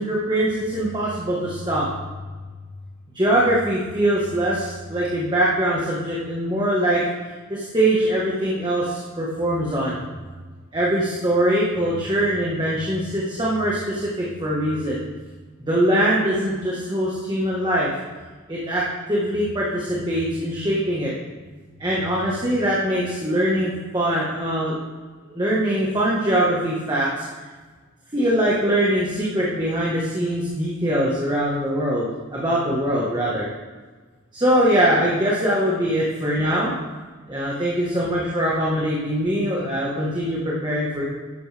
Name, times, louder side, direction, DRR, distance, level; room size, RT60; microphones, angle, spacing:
voice 1, 0.0-1.9 3.1-7.0 7.5-10.0 10.7-15.0 15.7-17.9 18.5-21.1 21.8-24.8 25.2-27.3 28.1-33.5 34.3-36.7 37.3-41.1, right 1 dB, 20° right, -6 dB, 1.4 m, -22 dB
12.5 x 10.0 x 3.5 m, 1.4 s
head